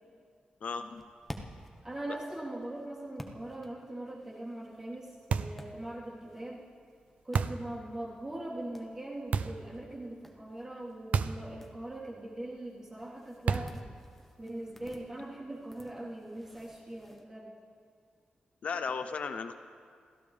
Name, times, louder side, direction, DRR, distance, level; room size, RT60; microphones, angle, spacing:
voice 1, 0.6-1.0 18.6-19.6, left 5 dB, 60° left, 8 dB, 0.6 m, -35 dB
sound 1, 0.8-17.2, equal, 5° left, 1.1 m, -53 dB
voice 2, 1.8-6.7 7.2-13.9 14.4-17.5, right 1 dB, 20° right, -6 dB, 3.5 m, -41 dB
sound 2, 5.3-5.7 7.3-7.7 9.3-9.7 11.1-11.5 11.8-11.9 13.5-13.9, right 6 dB, 70° right, 0.5 m, -30 dB
30.0 x 14.5 x 3.4 m, 2.1 s
wide cardioid pair, 170°, 3 cm